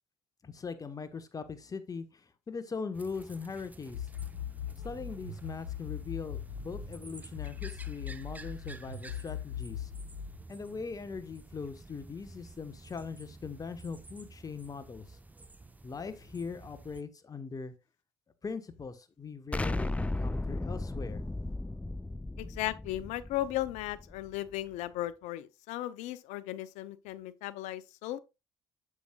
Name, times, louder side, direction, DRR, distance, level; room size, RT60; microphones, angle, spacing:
voice 1, 0.4-4.1 4.8-9.9 10.5-15.2 15.8-17.7 18.4-21.2, left 5 dB, 30° left, 1.3 m, -41 dB
sound 1, 2.9-17.0, right 2 dB, 15° right, 0.8 m, -51 dB
sound 2, 3.9-6.9 7.4-10.4, left 9 dB, 90° left, 1.9 m, -39 dB
Explosion, 19.5-24.4, left 2 dB, 10° left, 0.5 m, -35 dB
voice 2, 22.4-28.2, left 14 dB, 70° left, 0.6 m, -36 dB
8.3 x 7.3 x 2.4 m
hypercardioid pair, 60°, 12 cm